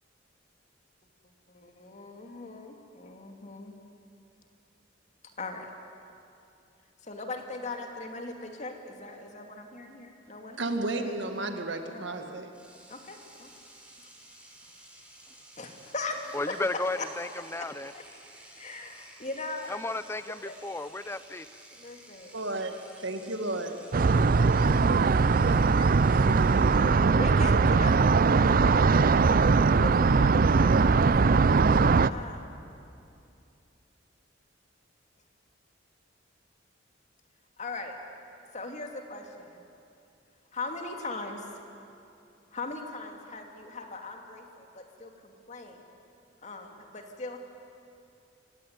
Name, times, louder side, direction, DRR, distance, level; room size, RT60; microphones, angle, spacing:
voice 1, 1.5-3.7 5.4-5.7 7.0-10.6 10.9-11.2 11.9-12.0 12.9-13.5 15.6-17.1 17.9-18.0 18.6-20.0 20.3-20.6 21.8-22.3 25.5-26.3 26.9-31.4 32.1-32.5 37.6-38.0 38.5-39.6 40.5-41.6 42.5-45.8 46.4-47.4, left 3 dB, 40° left, 3 dB, 2.5 m, -40 dB
voice 2, 10.6-12.5 22.3-22.7 23.0-23.8, right 2 dB, 70° right, 6 dB, 2.0 m, -32 dB
Engine / Domestic sounds home sounds, 12.1-12.2 12.5-27.2, right 1 dB, 5° right, 3.6 m, -53 dB
voice 3, 16.3-17.9 19.7-21.5, left 2 dB, 15° left, 14 dB, 0.5 m, -33 dB
sound 1, 23.9-32.1, right 4 dB, 50° right, 0.5 m, -21 dB
26.0 x 16.5 x 9.5 m, 2.6 s
head